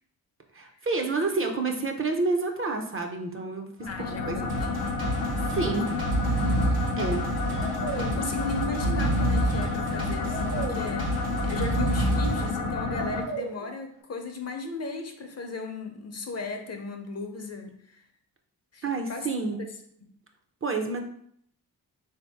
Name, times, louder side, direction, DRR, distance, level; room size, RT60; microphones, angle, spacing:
voice 1, 0.5-3.9 4.2-4.4 5.4-6.0 7.0-7.2 18.8-19.6 20.6-21.0, right 3 dB, 35° right, 3 dB, 0.6 m, -29 dB
sound 1, 3.8-13.2, left 3 dB, 60° left, 1.0 m, -30 dB
voice 2, 3.9-5.1 5.8-6.0 7.9-11.1 11.4-18.0 18.7-19.3 19.6-19.7 20.0-20.1, left 3 dB, 40° left, 5 dB, 0.6 m, -36 dB
Breathing, 3.9-4.2 4.5-4.6 5.5-5.7 6.0-7.0 7.6-8.2 8.7-9.7 10.3-10.9 11.4-12.4 13.0-13.6, right 2 dB, 85° right, 0.7 m, -28 dB
sound 2, 4.5-12.5, right 1 dB, 65° right, 1.0 m, -34 dB
3.7 x 2.8 x 3.4 m, 0.65 s
cardioid pair, 75°, 39 cm